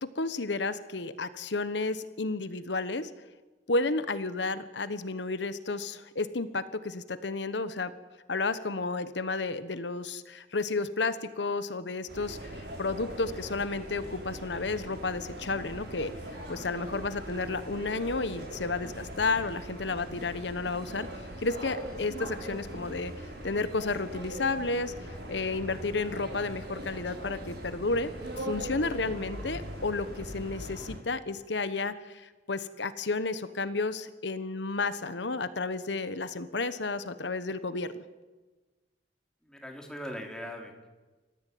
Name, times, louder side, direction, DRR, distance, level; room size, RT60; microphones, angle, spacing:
voice 1, 0.0-3.1 3.7-7.9 8.3-16.1 16.5-21.1 21.4-23.1 23.4-24.9 25.3-37.9, left 3 dB, 75° left, 13 dB, 1.2 m, -32 dB
sound 1, 12.1-31.0, right 1 dB, 70° right, 7.2 m, -41 dB
voice 2, 39.4-40.9, equal, 5° left, 2 dB, 3.7 m, -40 dB
29.0 x 15.0 x 9.4 m, 1.2 s
head